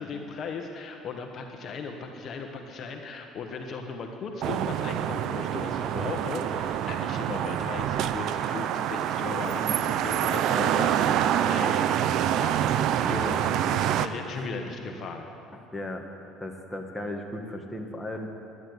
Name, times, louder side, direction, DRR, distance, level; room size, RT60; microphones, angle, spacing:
voice 1, 0.0-11.9 12.3-12.7 13.0-15.3, left 5 dB, 50° left, 4 dB, 1.2 m, -37 dB
sound 1, 4.4-14.1, right 10 dB, 65° right, 0.5 m, -26 dB
voice 2, 9.4-9.8 14.3-14.9 15.7-16.0 16.4-18.3, left 1 dB, 10° left, 2 dB, 1.8 m, -36 dB
11.0 x 11.0 x 8.0 m, 2.7 s
supercardioid pair, 85°, 0 cm